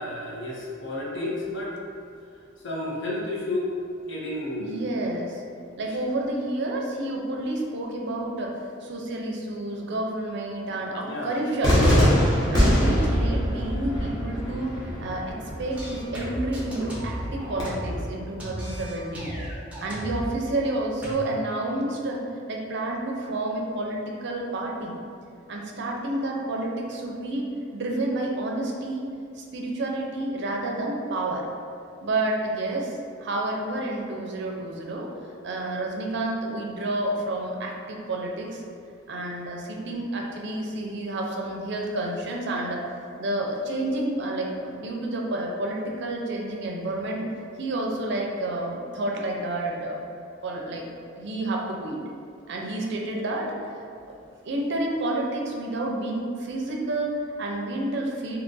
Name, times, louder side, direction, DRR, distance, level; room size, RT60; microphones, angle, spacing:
voice 1, 0.0-1.8 2.6-3.8 4.1-5.0 11.0-11.3, left 1 dB, 65° left, -4 dB, 0.7 m, -31 dB
voice 2, 4.6-5.4 5.8-12.2 12.5-19.3 19.8-22.2 22.5-24.9 25.5-31.5 32.0-32.9 33.2-35.1 35.4-38.6 39.1-42.8 43.2-47.2 47.6-50.0 50.4-50.8 51.1-52.0 52.5-54.2 54.4-58.4, right 1 dB, 60° right, -1 dB, 0.5 m, -30 dB
Cheering / Fireworks, 11.6-17.6, equal, 20° left, 0.8 m, -24 dB
sound 1, 15.7-18.1 18.4-20.3 21.0-21.1, equal, 5° right, 0.7 m, -34 dB
2.8 x 2.5 x 3.8 m, 2.5 s
head